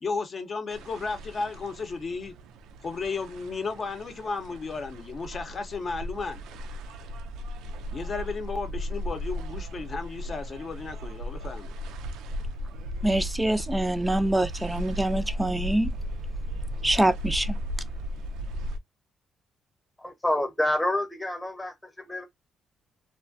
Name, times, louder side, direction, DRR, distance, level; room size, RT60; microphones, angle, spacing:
voice 1, 0.0-2.3 2.8-6.4 7.9-11.7, left 4 dB, 40° left, 0.6 m, -34 dB
sound 1, 0.7-18.8, equal, 90° right, 0.3 m, -36 dB
voice 2, 13.0-15.9 16.8-17.6, right 1 dB, 10° right, 0.3 m, -25 dB
voice 3, 20.0-22.3, left 1 dB, 10° left, 0.9 m, -28 dB
2.3 x 2.1 x 2.5 m
cardioid pair, 90°, 0 cm